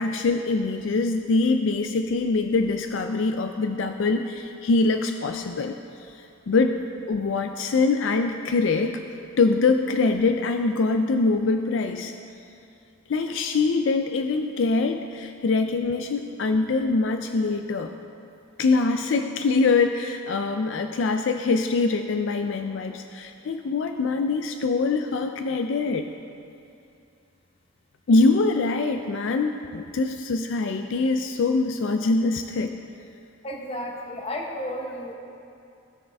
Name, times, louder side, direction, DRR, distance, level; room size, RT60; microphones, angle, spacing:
voice 1, 0.0-5.8 6.5-6.8 7.1-9.0 9.4-12.1 13.1-17.9 18.6-26.0 28.1-32.7, left 3 dB, 70° left, 6 dB, 0.4 m, -23 dB
voice 2, 33.4-35.1, left 1 dB, 30° left, 0 dB, 1.0 m, -32 dB
16.5 x 6.6 x 3.4 m, 2.6 s
head